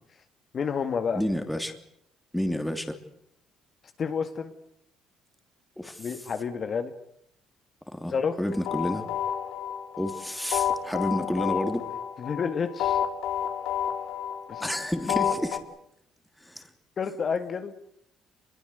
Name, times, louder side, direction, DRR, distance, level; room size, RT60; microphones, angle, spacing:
voice 1, 0.5-1.2 4.0-4.5 6.0-6.9 8.1-8.4 12.2-13.0 14.5-14.7 17.0-17.7, left 6 dB, 35° left, 2.1 m, -29 dB
voice 2, 1.1-1.7 2.3-3.0 5.8-6.1 7.9-9.0 10.0-11.8 14.6-15.6 16.4-16.7, left 1 dB, 5° left, 2.9 m, -30 dB
sound 1, 8.5-15.6, left 9 dB, 80° left, 4.2 m, -30 dB
26.5 x 22.5 x 8.2 m
cardioid pair, 140°, 0 cm